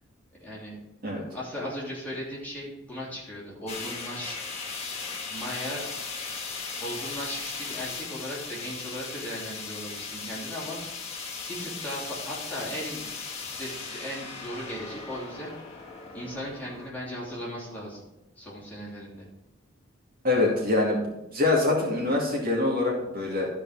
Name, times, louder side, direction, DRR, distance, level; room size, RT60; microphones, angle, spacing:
voice 1, 0.4-0.8 1.3-4.4 5.3-5.9 6.8-11.2 11.5-15.5 16.1-18.0 18.4-19.3, equal, 10° left, -7 dB, 3.0 m, -37 dB
sound 1, 3.7-16.9, left 4 dB, 30° left, 1.3 m, -37 dB
voice 2, 20.2-21.1 21.3-23.5, left 2 dB, 45° right, -2 dB, 2.2 m, -24 dB
13.0 x 5.1 x 4.7 m, 0.97 s
head